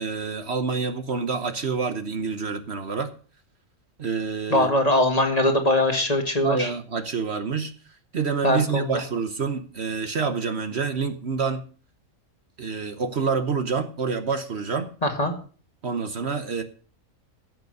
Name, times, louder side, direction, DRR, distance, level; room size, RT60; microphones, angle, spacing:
voice 1, 0.0-3.1 4.0-4.7 6.4-7.7 8.1-11.6 12.6-14.9 15.8-16.6, right 5 dB, 55° right, 9 dB, 1.2 m, -27 dB
voice 2, 4.5-6.7 8.4-8.9 15.0-15.3, left 1 dB, 30° left, 5 dB, 2.0 m, -21 dB
15.5 x 6.8 x 6.5 m, 0.41 s
omnidirectional pair, 1.4 m